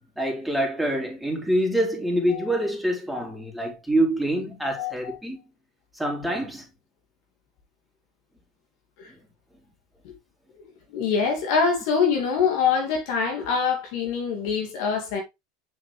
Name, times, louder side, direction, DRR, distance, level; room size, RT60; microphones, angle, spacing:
voice 1, 0.2-5.4 6.0-6.6, right 1 dB, 5° right, 3.4 m, -26 dB
voice 2, 4.8-5.1 10.9-15.2, left 6 dB, 65° left, 2.4 m, -24 dB
6.8 x 5.9 x 3.3 m
hypercardioid pair, 85°, 2 cm